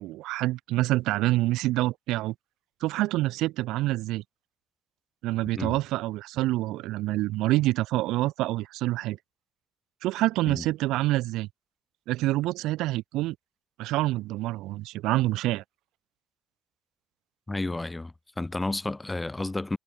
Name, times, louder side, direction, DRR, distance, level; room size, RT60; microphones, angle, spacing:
voice 1, 0.0-2.3 2.8-4.2 5.2-9.2 10.0-11.5 12.1-13.4 13.8-15.6, right 17 dB, 85° right, 0.6 m, -27 dB
voice 2, 17.5-19.8, left 2 dB, 10° left, 0.5 m, -31 dB
cardioid pair, 150°, 0 cm